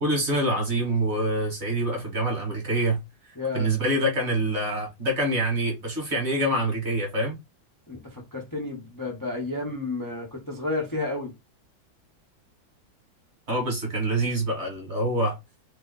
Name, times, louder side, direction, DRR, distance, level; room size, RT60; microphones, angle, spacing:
voice 1, 0.0-3.0 3.5-7.4 13.5-15.4, right 1 dB, 40° right, 1.2 m, -25 dB
voice 2, 3.4-3.7 7.9-11.3, left 2 dB, 25° left, 0.4 m, -31 dB
3.2 x 2.5 x 3.8 m
omnidirectional pair, 2.1 m